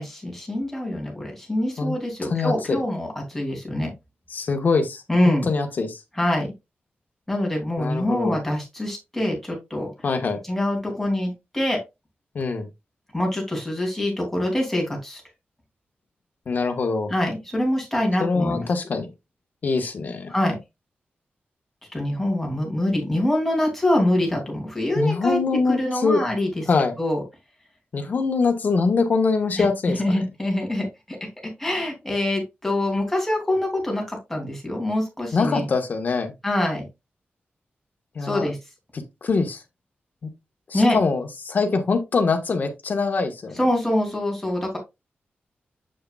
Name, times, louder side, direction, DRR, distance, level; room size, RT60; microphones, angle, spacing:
voice 1, 0.0-3.9 5.1-5.5 6.2-6.5 7.3-9.9 10.5-11.8 13.1-15.2 17.1-18.7 20.3-20.6 21.9-25.4 25.7-26.6 27.0-27.2 29.6-29.7 30.0-31.2 31.4-35.7 36.4-36.9 38.2-38.6 40.7-41.0 43.6-44.8, left 1 dB, 5° left, 2.7 m, -24 dB
voice 2, 2.2-2.8 4.3-6.0 7.8-8.4 10.0-10.4 12.3-12.7 16.5-17.1 18.2-19.1 19.6-20.3 24.9-26.2 26.7-26.9 27.9-30.2 35.3-36.3 38.1-38.5 39.2-39.6 40.2-40.3 40.7-43.6, left 4 dB, 50° left, 1.3 m, -23 dB
7.6 x 6.6 x 2.3 m
wide cardioid pair, 170°, 4 cm